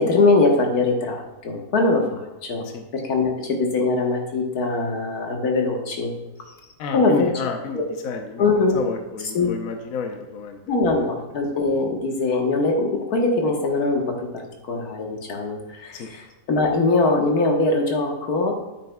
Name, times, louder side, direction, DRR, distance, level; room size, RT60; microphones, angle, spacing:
voice 1, 0.0-2.7 2.9-6.1 6.9-7.3 7.7-7.8 8.4-8.8 9.3-9.5 10.7-18.5, left 3 dB, 90° left, 1 dB, 1.8 m, -22 dB
voice 2, 6.8-8.5 8.7-10.8 15.9-16.1, left 5 dB, 70° left, 3 dB, 1.2 m, -30 dB
10.0 x 8.4 x 2.3 m, 1.1 s
omnidirectional pair, 1.6 m